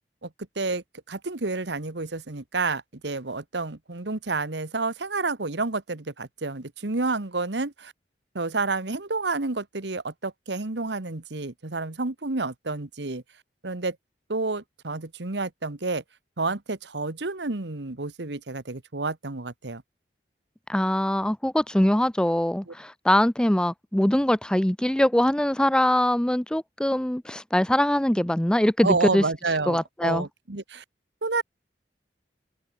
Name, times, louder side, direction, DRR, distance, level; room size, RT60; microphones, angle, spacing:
voice 1, 0.6-7.9 8.3-13.2 13.6-14.0 14.3-16.0 16.4-19.8 22.7-22.8 28.8-30.8 31.2-31.4, right 3 dB, 80° right, 1.5 m, -29 dB
voice 2, 20.7-29.2 29.7-30.3, left 1 dB, 5° left, 0.4 m, -22 dB
head